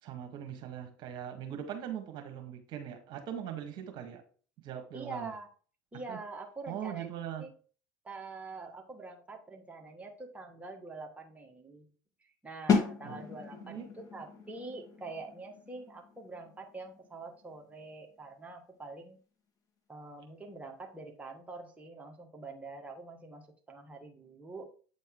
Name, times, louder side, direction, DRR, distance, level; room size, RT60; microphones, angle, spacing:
voice 1, 0.0-4.2 4.6-5.3 6.1-6.2 6.7-7.4 13.0-13.2 13.6-13.9, right 9 dB, 50° right, 5 dB, 1.5 m, -41 dB
voice 2, 4.9-5.5 5.9-7.1 7.4-7.5 8.0-11.9 12.2-19.2 19.9-24.7, right 3 dB, 15° right, 1 dB, 1.4 m, -45 dB
sound 1, 12.7-18.4, left 5 dB, 35° left, 2.0 m, -35 dB
8.4 x 4.1 x 3.7 m, 0.40 s
hypercardioid pair, 85°, 10 cm